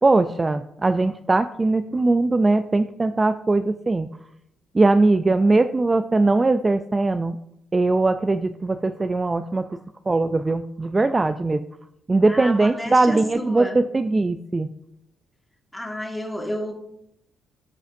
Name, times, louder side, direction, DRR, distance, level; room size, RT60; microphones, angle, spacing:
voice 1, 0.0-4.1 4.7-7.4 7.7-9.7 10.1-11.6 12.1-14.7, right 2 dB, 25° right, 9 dB, 0.3 m, -20 dB
voice 2, 12.3-14.1 15.7-16.7, equal, 5° left, 1 dB, 1.8 m, -31 dB
14.0 x 5.0 x 2.6 m, 0.78 s
cardioid pair, 90°, 0 cm